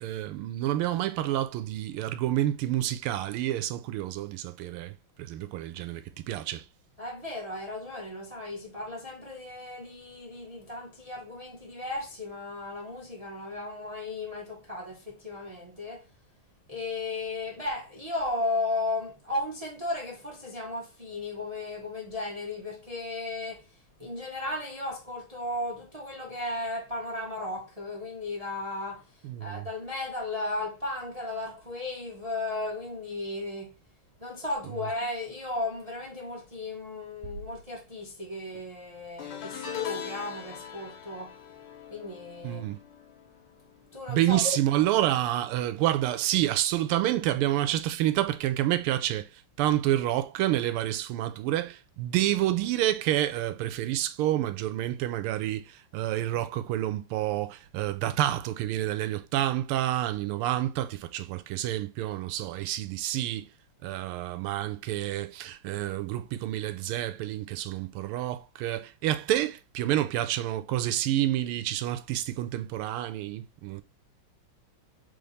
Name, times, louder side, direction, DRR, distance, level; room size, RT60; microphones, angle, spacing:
voice 1, 0.0-6.6 29.2-29.6 42.4-42.8 44.1-49.3 49.6-63.5 63.8-73.8, right 13 dB, 85° right, 1.5 m, -28 dB
voice 2, 7.0-16.1 16.7-33.8 34.2-41.4 41.9-42.6 43.9-44.6, left 2 dB, 35° right, 0.5 m, -35 dB
sound 1, 39.2-44.6 44.8-45.2 46.4-46.5, left 8 dB, 80° left, 1.8 m, -41 dB
3.6 x 3.5 x 3.9 m
omnidirectional pair, 2.4 m